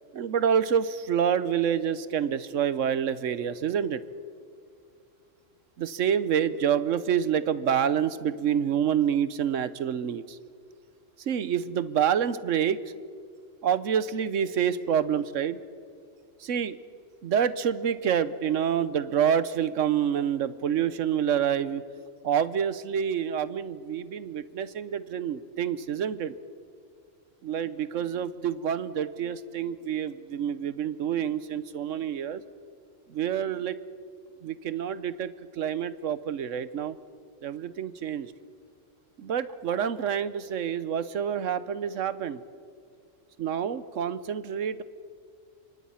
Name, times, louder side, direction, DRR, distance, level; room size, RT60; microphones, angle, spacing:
voice 1, 0.1-4.0 5.8-10.4 11.3-12.8 13.6-15.6 16.4-16.8 17.2-21.8 22.2-26.3 27.4-32.4 33.1-33.8 34.4-37.0 37.4-38.3 39.2-42.4 43.4-44.8, right 8 dB, 75° right, 15 dB, 1.2 m, -27 dB
26.5 x 24.0 x 5.7 m, 2.2 s
omnidirectional pair, 1.3 m